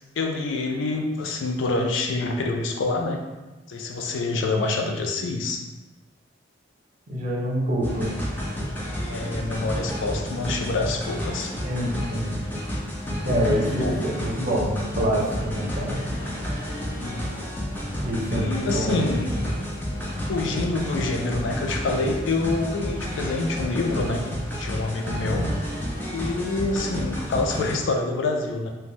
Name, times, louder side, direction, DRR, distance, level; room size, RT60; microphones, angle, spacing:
voice 1, 0.2-3.2 3.7-5.6 9.1-11.5 13.3-14.0 17.0-17.3 18.3-19.3 20.3-24.2 24.5-25.5 26.1-28.7, left 3 dB, 85° left, 3 dB, 0.4 m, -26 dB
voice 2, 7.1-8.1 11.6-12.4 13.2-16.0 18.0-19.1, equal, 40° right, -3 dB, 0.6 m, -26 dB
sound 1, 7.8-27.7, equal, 10° left, 0.4 m, -30 dB
2.5 x 2.2 x 3.0 m, 1.2 s
head